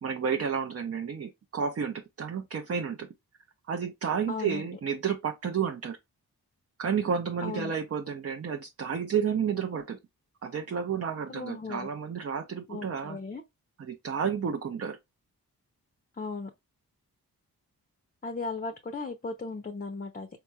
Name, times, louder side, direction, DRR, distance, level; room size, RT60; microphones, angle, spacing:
voice 1, 0.0-3.1 3.7-6.0 6.8-10.0 10.4-13.2 13.8-15.0, right 7 dB, 40° right, 0.5 m, -31 dB
voice 2, 4.3-4.6 7.4-7.7 11.3-11.9 12.7-13.4 16.2-16.5 18.2-20.3, left 3 dB, 25° left, 0.6 m, -36 dB
4.4 x 2.9 x 2.2 m
cardioid pair, 45°, 39 cm